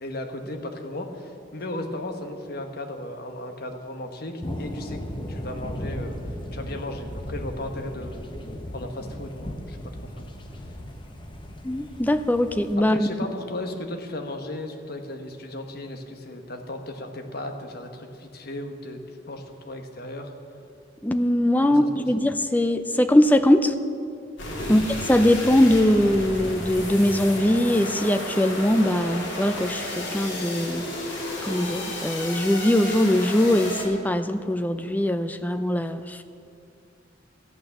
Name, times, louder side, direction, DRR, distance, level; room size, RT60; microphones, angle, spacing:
voice 1, 0.0-5.0 5.3-6.2 6.5-8.2 8.7-9.8 10.2-10.3 12.8-19.0 19.3-20.3 21.6-21.9 24.6-24.8, left 1 dB, 55° left, 4 dB, 1.2 m, -35 dB
sound 1, 4.4-12.8, equal, 25° left, 1.0 m, -36 dB
voice 2, 11.6-13.1 21.0-23.7 24.7-24.8 25.1-30.9 31.4-36.2, left 1 dB, 10° left, 10 dB, 0.5 m, -21 dB
sound 2, 24.4-33.8, left 1 dB, 70° left, 3.0 m, -32 dB
13.5 x 9.1 x 7.0 m, 2.5 s
head